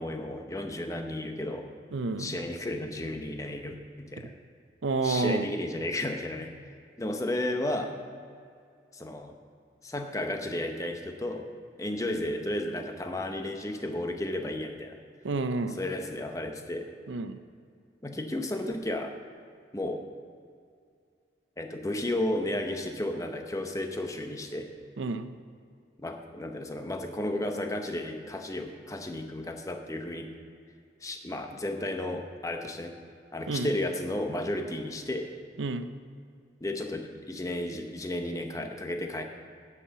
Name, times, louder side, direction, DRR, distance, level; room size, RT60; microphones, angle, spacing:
voice 1, 0.0-1.7 2.2-4.3 5.0-6.5 7.0-8.0 8.9-9.4 9.8-11.5 11.8-15.0 15.8-16.9 18.0-19.1 19.7-20.0 21.6-24.7 26.0-30.3 31.0-33.0 33.3-35.3 36.6-39.2, left 1 dB, 15° left, 5 dB, 0.7 m, -33 dB
voice 2, 1.9-2.4 4.8-5.5 15.2-15.8 17.1-17.4 25.0-25.3 33.5-33.7 35.6-35.9, right 3 dB, 80° right, 11 dB, 0.6 m, -29 dB
9.9 x 5.8 x 7.0 m, 2.3 s
head